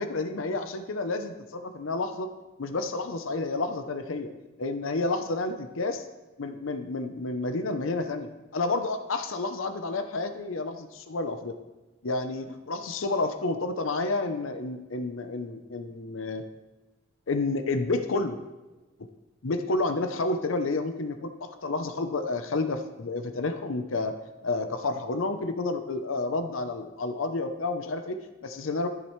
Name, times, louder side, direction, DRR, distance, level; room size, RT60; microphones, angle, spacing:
voice 1, 0.0-2.3 2.6-4.3 4.6-6.0 6.4-11.6 12.0-16.4 17.3-18.4 19.4-24.1 24.4-28.9, left 3 dB, 70° left, 8 dB, 0.7 m, -30 dB
13.5 x 7.3 x 3.2 m, 1.1 s
head